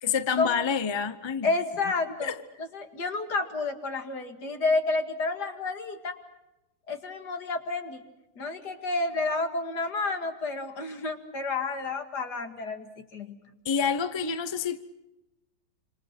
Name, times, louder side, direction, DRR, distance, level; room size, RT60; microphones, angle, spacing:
voice 1, 0.0-1.6 2.2-2.4 13.6-14.8, left 6 dB, 25° left, 0.5 m, -28 dB
voice 2, 1.4-2.3 2.7-6.2 6.9-8.0 8.4-13.4, left 3 dB, 55° left, 2.7 m, -30 dB
27.5 x 27.0 x 6.0 m
omnidirectional pair, 2.1 m